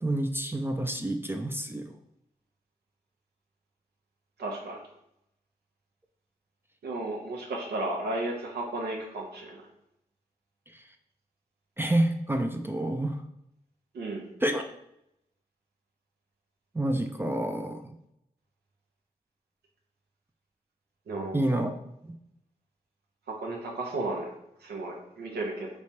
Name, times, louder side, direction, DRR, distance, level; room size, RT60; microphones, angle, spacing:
voice 1, 0.0-1.9 10.7-10.9 11.8-13.2 14.4-14.6 16.7-18.0 21.3-21.7, right 1 dB, 15° right, 5 dB, 0.4 m, -28 dB
voice 2, 4.4-4.8 6.8-9.6 13.9-14.3 21.1-21.6 23.3-24.3 24.6-25.7, right 2 dB, 90° right, 0 dB, 0.8 m, -34 dB
3.4 x 3.2 x 2.8 m, 0.80 s
cardioid pair, 45°, 16 cm